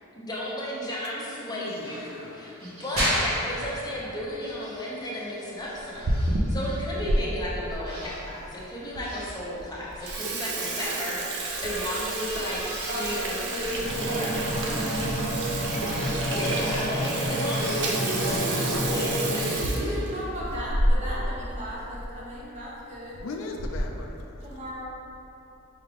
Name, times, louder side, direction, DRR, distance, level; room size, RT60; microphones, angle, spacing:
voice 1, 0.1-12.6 12.9-14.3 16.3-19.6, equal, 20° left, -6 dB, 0.6 m, -33 dB
voice 2, 1.5-2.7 20.5-20.6 23.2-24.4, left 3 dB, 65° left, 2 dB, 0.3 m, -39 dB
sound 1, 1.8-4.1 4.4-6.8 7.8-8.2 9.0-9.3 10.0-17.1 17.5-18.8 19.3-20.3, equal, 90° right, 1.2 m, -36 dB
Water tap faucet / Sink (filling or washing), 5.7-7.2 7.7-7.8 8.5-8.6 8.9-9.0 9.4-9.6 9.9-21.3 21.6-21.7 22.0-22.1 22.9-23.2 23.6-24.0, right 1 dB, 55° right, 0.5 m, -30 dB
voice 3, 12.9-15.3 16.5-16.7 19.7-23.3 24.4-24.8, equal, 35° right, -6 dB, 0.7 m, -36 dB
sound 2, 13.8-19.4, equal, 45° left, 0.8 m, -29 dB
4.8 x 2.4 x 3.3 m, 2.9 s
head